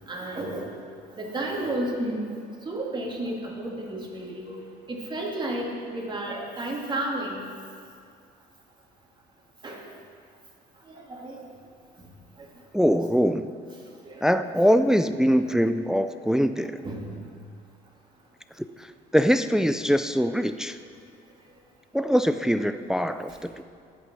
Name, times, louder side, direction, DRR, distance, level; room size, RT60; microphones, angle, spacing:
voice 1, 0.1-0.7 1.1-2.3 2.6-4.6 4.9-7.4 9.6-9.8 11.0-11.4 14.0-14.3 15.3-15.4 16.8-17.0, right 1 dB, 25° right, -2 dB, 2.2 m, -32 dB
voice 2, 12.7-13.5 14.2-16.8 18.8-18.9 19.1-20.8 21.9-23.6, equal, 5° right, 11 dB, 0.4 m, -23 dB
11.0 x 8.9 x 6.0 m, 2.3 s
cardioid pair, 110°, 17 cm